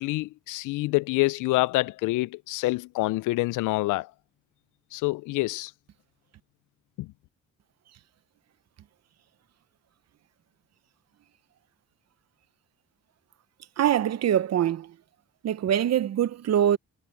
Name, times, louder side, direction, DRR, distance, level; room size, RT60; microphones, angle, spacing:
voice 1, 0.0-4.1 4.9-5.7 7.0-7.1, left 20 dB, 85° left, 0.5 m, -26 dB
voice 2, 13.8-14.9 15.4-16.8, right 10 dB, 60° right, 1.0 m, -23 dB
cardioid pair, 90°, 30 cm